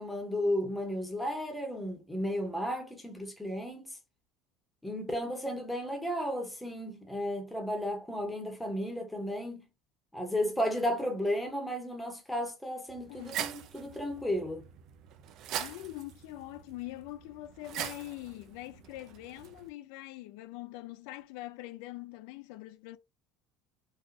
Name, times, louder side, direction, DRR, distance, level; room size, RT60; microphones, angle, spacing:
voice 1, 0.0-4.0 4.8-9.6 10.1-14.6, equal, 5° left, 1.0 m, -34 dB
sound 1, 12.9-19.7, right 10 dB, 50° right, 0.5 m, -42 dB
voice 2, 15.5-23.0, left 17 dB, 75° left, 0.4 m, -43 dB
3.9 x 2.4 x 2.7 m
cardioid pair, 155°, 0 cm